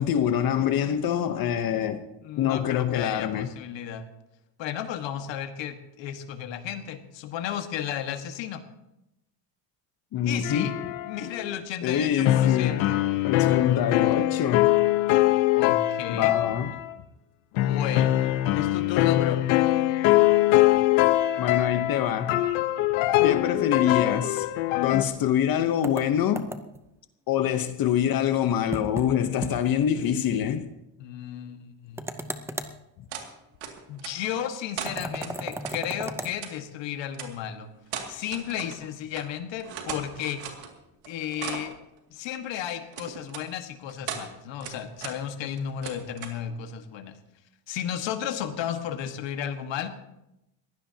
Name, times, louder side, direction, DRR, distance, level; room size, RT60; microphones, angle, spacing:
voice 1, 0.0-2.1 2.4-3.5 10.1-10.9 11.8-12.8 13.2-14.7 16.1-16.7 21.4-22.4 23.2-24.5 24.8-26.5 27.3-30.7, left 9 dB, 50° left, 1.0 m, -25 dB
voice 2, 2.2-4.1 4.6-8.6 10.2-10.8 11.0-13.0 15.5-16.3 17.6-18.2 18.5-19.5 31.0-32.0 33.9-37.7 38.1-40.4 41.1-41.8 42.1-47.2 47.7-49.9, left 9 dB, 65° left, 1.7 m, -33 dB
sound 1, 10.4-11.6 12.2-16.9 17.6-25.0, left 15 dB, 90° left, 1.1 m, -23 dB
sound 2, 25.8-26.9 28.7-29.1 29.4-29.6 29.9-30.0 32.0-32.8 34.8-36.3, right 1 dB, 5° right, 0.6 m, -34 dB
sound 3, 33.1-33.3 33.6-34.4 34.8-35.8 36.4-36.5 37.1-37.3 37.9-38.9 39.1-39.3 39.6-40.7 41.0-41.8 42.9-43.4 43.9-44.3 44.6-45.2 45.5-46.4, right 8 dB, 90° right, 2.5 m, -37 dB
21.5 x 16.0 x 2.9 m
cardioid pair, 145°, 47 cm